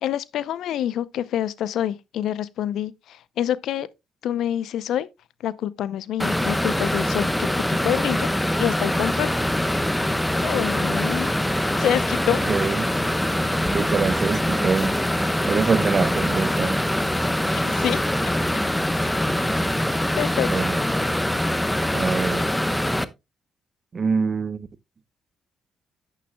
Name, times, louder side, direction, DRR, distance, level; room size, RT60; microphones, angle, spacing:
voice 1, 0.0-3.9 4.2-5.1 5.4-7.5 7.8-8.3 8.6-9.3 10.4-11.3 11.8-12.4 17.5-18.0 20.2-20.5, left 11 dB, 70° left, 0.6 m, -26 dB
sound 1, 6.2-23.0, left 1 dB, 10° left, 0.9 m, -23 dB
voice 2, 12.3-12.9 13.7-15.0 15.5-16.8 20.5-20.8 21.9-22.5 23.9-24.7, right 5 dB, 45° right, 0.8 m, -24 dB
11.0 x 9.1 x 2.2 m
hypercardioid pair, 45°, 0 cm